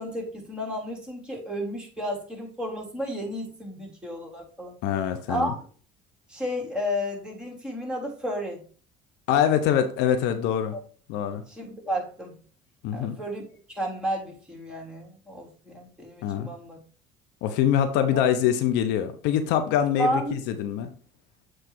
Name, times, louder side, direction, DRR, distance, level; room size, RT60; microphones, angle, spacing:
voice 1, 0.0-4.7 5.3-5.5 6.3-8.6 11.5-12.3 12.9-13.4 13.7-16.8 18.1-18.2 20.0-20.3, equal, 5° right, -2 dB, 3.0 m, -32 dB
voice 2, 4.8-5.5 9.3-10.8 11.1-11.4 12.8-13.2 16.2-16.5 17.4-20.9, left 9 dB, 70° left, 9 dB, 0.8 m, -24 dB
7.8 x 3.2 x 4.6 m, 0.41 s
supercardioid pair, 75°, 18 cm